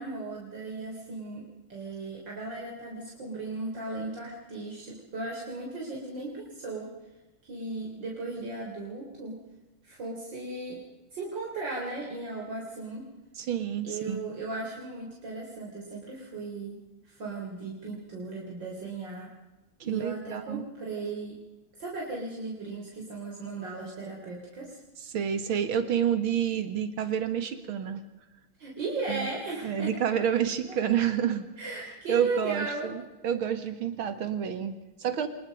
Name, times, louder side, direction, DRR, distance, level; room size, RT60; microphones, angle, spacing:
voice 1, 0.0-6.9 7.5-9.4 9.8-10.8 11.1-13.0 13.8-16.8 17.0-19.3 19.8-21.4 21.8-24.8 28.6-30.2 30.7-30.9 31.6-32.9, right 3 dB, 60° right, -3 dB, 4.4 m, -36 dB
voice 2, 13.4-14.2 19.8-20.7 25.0-28.0 29.1-29.3 29.6-31.5 32.1-35.3, right 9 dB, 90° right, 9 dB, 2.5 m, -29 dB
25.5 x 21.0 x 5.3 m, 1.1 s
omnidirectional pair, 2.2 m